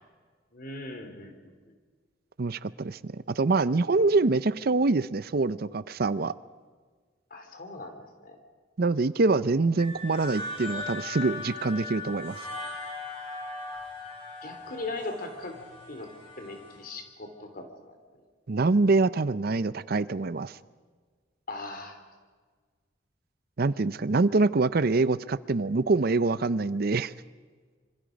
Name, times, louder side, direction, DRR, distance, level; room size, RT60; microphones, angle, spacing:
voice 1, 0.5-1.7 7.3-8.4 14.4-15.6 15.9-16.1 16.4-18.0 21.5-22.0, left 2 dB, 50° left, 6 dB, 3.4 m, -39 dB
voice 2, 2.4-6.3 8.8-12.4 18.5-20.6 23.6-27.1, right 3 dB, 55° right, 17 dB, 0.6 m, -25 dB
sound 1, 9.8-16.8, left 3 dB, 30° left, 5.6 m, -39 dB
26.5 x 25.5 x 5.3 m, 1.5 s
head